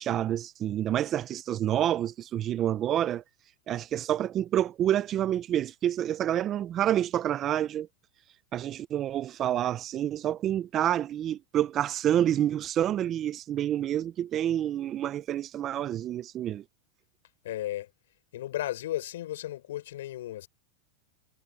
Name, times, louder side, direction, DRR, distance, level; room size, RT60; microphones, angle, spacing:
voice 1, 0.0-3.2 3.7-7.9 8.5-16.6, right 11 dB, 30° right, 0.6 m, -28 dB
voice 2, 17.4-17.9 18.3-20.5, left 14 dB, 75° left, 5.1 m, -34 dB
supercardioid pair, 145°, 0 cm